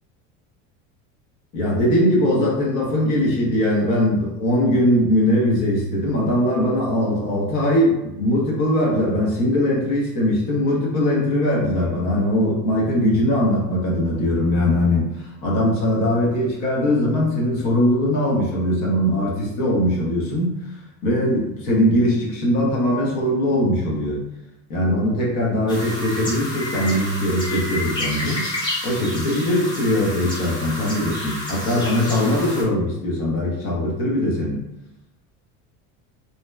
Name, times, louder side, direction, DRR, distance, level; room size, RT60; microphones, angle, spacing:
voice 1, 1.5-20.6 21.0-24.2 24.7-28.4 28.8-34.6, left 1 dB, 50° left, -3 dB, 0.8 m, -21 dB
sound 1, 25.7-32.6, left 1 dB, 15° left, 0.4 m, -30 dB
2.8 x 2.0 x 2.2 m, 0.88 s
cardioid pair, 165°, 36 cm